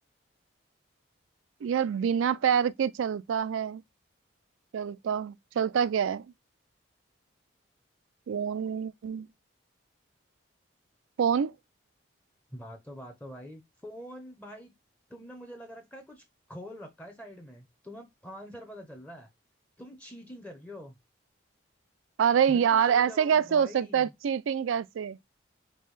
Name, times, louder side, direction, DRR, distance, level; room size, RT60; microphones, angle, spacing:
voice 1, 1.6-3.8 4.7-6.3 8.3-9.3 11.2-11.5 22.2-25.2, right 8 dB, 75° right, 0.3 m, -26 dB
voice 2, 12.5-14.7 15.1-16.2 16.5-19.3 19.8-21.0 22.5-24.1, equal, 5° left, 0.7 m, -45 dB
5.3 x 2.2 x 3.2 m
head